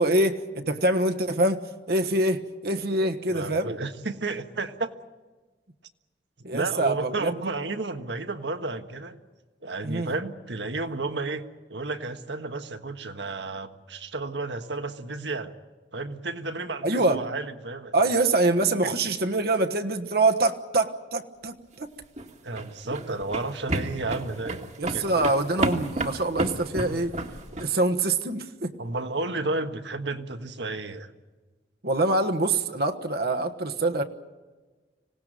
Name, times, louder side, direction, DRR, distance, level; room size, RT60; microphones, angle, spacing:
voice 1, 0.0-3.8 6.4-7.3 9.8-10.1 16.8-17.3 17.9-21.9 24.8-27.1 27.6-28.7 31.8-34.0, right 2 dB, 60° right, 1.3 m, -25 dB
voice 2, 3.0-4.9 6.5-9.2 9.6-11.4 11.7-15.5 15.9-18.1 18.8-18.9 22.4-25.3 28.8-31.1, right 3 dB, 80° right, 1.5 m, -32 dB
sound 1, 22.0-27.7, right 2 dB, 40° right, 1.7 m, -31 dB
25.5 x 18.0 x 9.1 m
head